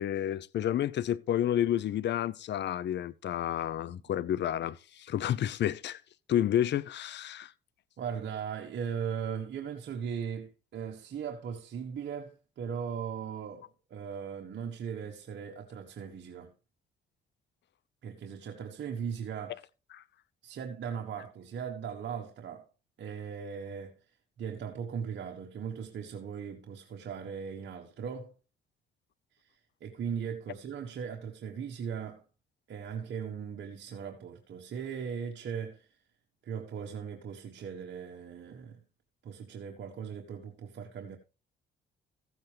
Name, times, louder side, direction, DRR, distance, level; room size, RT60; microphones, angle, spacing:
voice 1, 0.0-6.0 6.3-7.5 19.9-20.0, left 11 dB, 60° left, 0.7 m, -30 dB
voice 2, 8.0-16.5 18.0-19.6 20.4-22.6 23.0-24.0 24.4-28.3 29.3-32.2 32.7-36.0 36.4-38.8 39.2-41.2, right 7 dB, 60° right, 1.4 m, -38 dB
15.0 x 8.1 x 3.4 m
cardioid pair, 90°, 20 cm